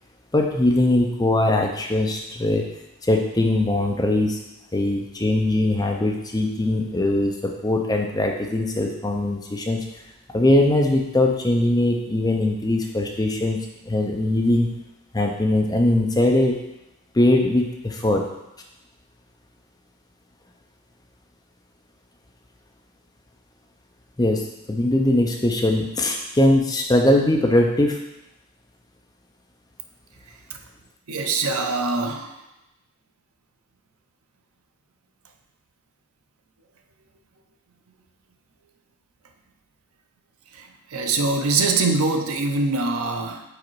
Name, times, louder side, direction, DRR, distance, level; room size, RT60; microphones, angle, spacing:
voice 1, 0.3-2.6 3.0-4.4 4.7-9.8 10.3-13.6 13.9-14.8 15.1-16.6 17.1-18.2 24.2-28.0, left 1 dB, 15° left, 2 dB, 0.5 m, -21 dB
voice 2, 31.1-32.3 40.9-43.4, right 3 dB, 75° right, 5 dB, 0.6 m, -23 dB
4.9 x 4.2 x 4.6 m, 0.90 s
head